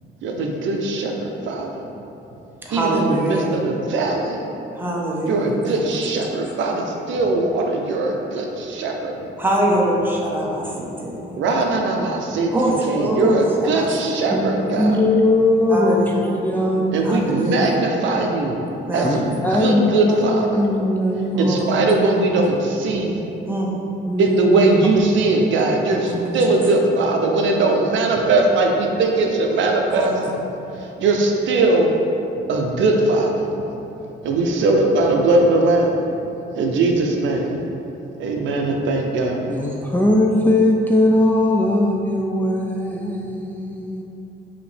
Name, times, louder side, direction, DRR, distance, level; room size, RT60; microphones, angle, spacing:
voice 1, 0.2-1.7 2.7-4.4 5.3-9.1 11.4-14.9 16.9-18.6 18.9-20.6 21.4-23.2 24.2-30.1 30.8-31.9 32.5-33.3 34.2-35.9 36.5-37.5 38.2-39.4, right 2 dB, 70° right, 1 dB, 0.5 m, -20 dB
voice 2, 2.6-3.5 4.7-5.8 6.1-6.2 9.4-11.6 12.5-14.4 14.7-14.9 15.7-16.4 17.0-17.7 18.9-19.1 19.4-19.6 21.3-21.7 23.5-23.8 26.0-26.6 29.9-30.3 39.6-39.7, right 1 dB, 10° right, -4 dB, 0.8 m, -24 dB
voice 3, 14.3-16.1 16.4-17.2 18.2-18.3 19.0-21.6 24.1-24.6 25.3-25.4 25.9-26.6 39.5-44.0, left 1 dB, 10° left, -2 dB, 0.3 m, -20 dB
5.0 x 2.8 x 3.2 m, 2.9 s
cardioid pair, 90°, 20 cm